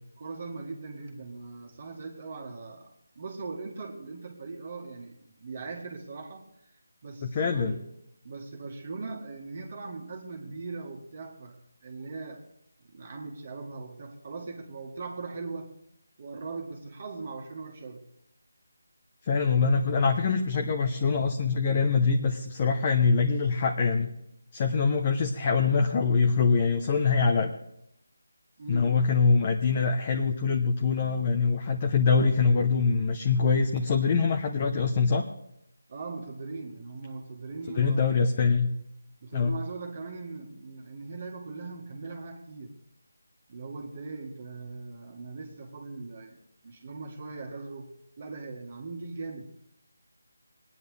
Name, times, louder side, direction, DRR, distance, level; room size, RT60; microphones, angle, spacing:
voice 1, 0.2-6.5 7.0-7.8 8.2-12.5 12.8-15.7 16.2-18.1 28.6-28.9 35.9-38.2 39.2-42.7 43.5-47.9 48.2-49.5, right 3 dB, 40° right, 2 dB, 1.8 m, -40 dB
voice 2, 7.3-7.8 19.3-24.1 24.5-27.5 28.7-35.2 37.7-38.7 39.3-39.6, left 5 dB, 25° left, 4 dB, 0.8 m, -24 dB
20.5 x 9.8 x 3.4 m, 0.80 s
figure-of-eight pair, 165°, 0 cm